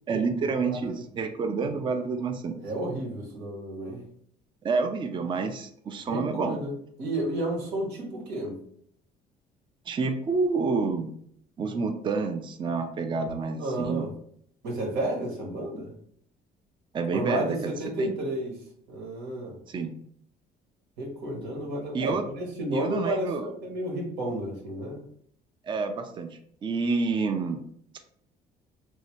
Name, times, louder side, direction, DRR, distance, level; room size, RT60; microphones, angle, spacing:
voice 1, 0.1-2.6 4.6-6.6 9.9-11.1 11.6-14.1 16.9-17.7 18.0-18.1 19.7-19.9 21.9-22.3 22.7-23.5 25.6-27.6, right 4 dB, 30° right, 7 dB, 0.4 m, -28 dB
voice 2, 0.7-1.0 2.6-4.0 6.1-6.7 7.0-8.6 13.6-14.1 14.6-15.9 17.1-18.6 18.9-19.6 21.0-25.0, right 1 dB, 85° right, 0 dB, 1.2 m, -31 dB
3.1 x 2.7 x 3.0 m, 0.64 s
cardioid pair, 110°, 17 cm